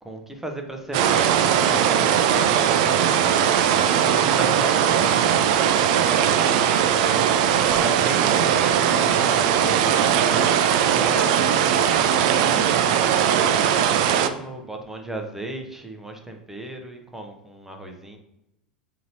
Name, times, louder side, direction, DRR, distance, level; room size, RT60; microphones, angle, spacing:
voice 1, 0.0-6.8 7.7-11.6 12.3-18.2, right 1 dB, 5° right, 3 dB, 0.6 m, -35 dB
sound 1, 0.9-14.3, right 9 dB, 55° right, 0.3 m, -19 dB
5.1 x 2.8 x 2.8 m, 0.89 s
figure-of-eight pair, 85°, 5 cm